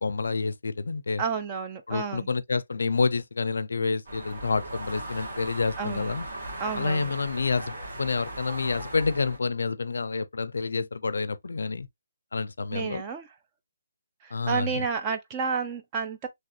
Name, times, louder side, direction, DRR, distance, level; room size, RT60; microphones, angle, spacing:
voice 1, 0.0-1.2 1.9-6.2 6.8-11.9 12.3-13.0 14.3-14.8, left 4 dB, 80° left, 0.4 m, -28 dB
voice 2, 1.2-2.3 5.8-6.1 6.6-7.1 12.7-13.3 14.2-16.3, right 6 dB, 15° right, 0.4 m, -31 dB
sound 1, 4.1-9.4, right 1 dB, 55° right, 1.9 m, -38 dB
3.3 x 2.4 x 2.6 m
hypercardioid pair, 175°, 0 cm